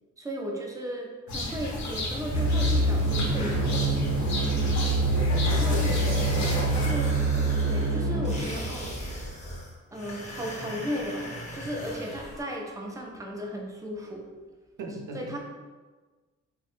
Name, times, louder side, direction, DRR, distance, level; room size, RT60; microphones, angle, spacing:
voice 1, 0.2-3.9 5.5-6.0 6.6-8.9 9.9-14.3 15.1-15.4, equal, 10° right, 0 dB, 0.4 m, -36 dB
sound 1, 1.3-6.9, left 1 dB, 65° left, 0.7 m, -32 dB
sound 2, 2.3-8.4, right 2 dB, 55° right, 0.8 m, -25 dB
voice 2, 5.2-6.8 14.8-15.4, right 3 dB, 90° right, 0 dB, 0.6 m, -38 dB
sound 3, 5.4-12.4, equal, 20° left, 0.7 m, -39 dB
2.8 x 2.1 x 3.0 m, 1.3 s
cardioid pair, 95°, 31 cm